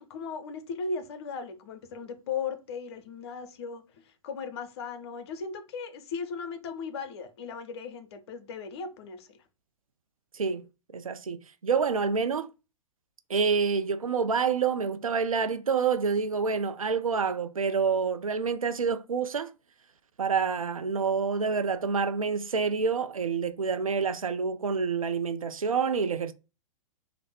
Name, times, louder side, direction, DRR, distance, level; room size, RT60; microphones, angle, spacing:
voice 1, 0.0-9.4, left 5 dB, 50° left, 0.6 m, -37 dB
voice 2, 10.3-10.7 10.9-12.5 13.3-19.5 20.2-26.3, right 5 dB, 85° right, 0.4 m, -27 dB
3.3 x 2.0 x 4.1 m
figure-of-eight pair, 110°, 17 cm